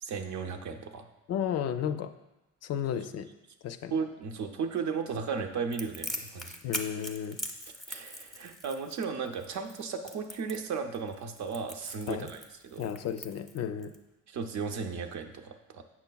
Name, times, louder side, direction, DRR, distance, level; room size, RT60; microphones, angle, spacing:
voice 1, 0.0-1.1 3.9-6.6 7.9-12.9 14.3-15.8, right 5 dB, 65° right, 4 dB, 0.7 m, -35 dB
voice 2, 1.3-2.1 2.6-3.3 3.6-3.9 6.6-7.4 12.1-12.3 12.8-13.9, left 9 dB, 60° left, 9 dB, 0.4 m, -33 dB
Crackle, 5.7-14.0, equal, ahead, 0.6 m, -41 dB
7.4 x 5.7 x 2.3 m, 0.99 s
cardioid pair, 90°, 30 cm